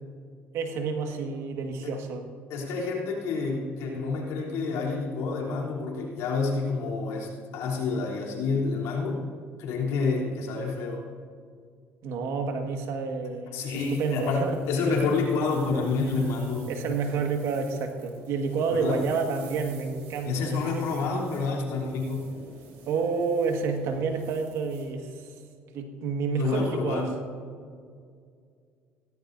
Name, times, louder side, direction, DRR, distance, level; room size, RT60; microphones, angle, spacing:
voice 1, 0.5-2.3 12.0-13.6 13.9-14.6 14.8-15.0 16.7-20.6 22.9-25.3 25.7-27.1, right 5 dB, 70° right, 4 dB, 1.7 m, -29 dB
voice 2, 2.5-9.2 9.6-11.0 13.5-16.7 18.7-19.0 20.2-22.2 26.3-27.1, left 4 dB, 75° left, -2 dB, 3.3 m, -28 dB
sound 1, 13.8-24.8, right 3 dB, 90° right, 3.8 m, -50 dB
17.0 x 16.0 x 2.7 m, 2.2 s
supercardioid pair, 90°, 5 cm